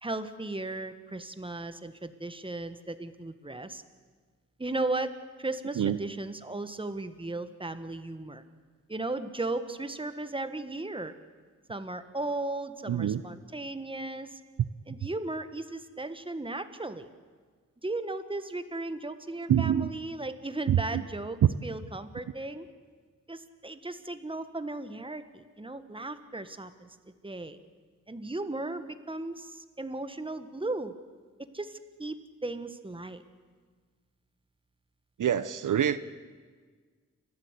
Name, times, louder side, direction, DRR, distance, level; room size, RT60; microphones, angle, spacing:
voice 1, 0.0-3.8 4.6-5.1 5.4-8.4 8.9-11.1 11.7-14.4 14.9-17.1 17.8-22.7 23.3-27.0 27.2-27.6 28.1-30.9 31.4-33.2, right 2 dB, 15° right, 10 dB, 1.5 m, -36 dB
voice 2, 12.9-13.2 19.5-19.9 20.7-21.0 21.4-21.5 35.2-36.0, right 10 dB, 75° right, 13 dB, 0.7 m, -25 dB
29.5 x 12.5 x 8.2 m, 1.5 s
cardioid pair, 70°, 31 cm